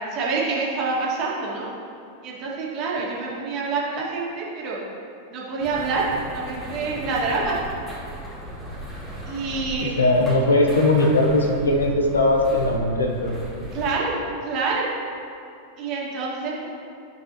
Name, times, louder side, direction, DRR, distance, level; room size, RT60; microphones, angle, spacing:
voice 1, 0.1-1.7 2.2-4.8 5.3-6.1 6.3-7.6 9.3-10.1 13.7-14.2 14.4-14.9 15.8-16.7, right 4 dB, 40° right, -4 dB, 1.9 m, -27 dB
sound 1, 5.6-13.9, right 1 dB, 10° left, 1.9 m, -36 dB
voice 2, 9.8-13.3, left 2 dB, 70° left, 1 dB, 0.9 m, -19 dB
13.5 x 6.1 x 2.9 m, 2.5 s
figure-of-eight pair, 90°, 0 cm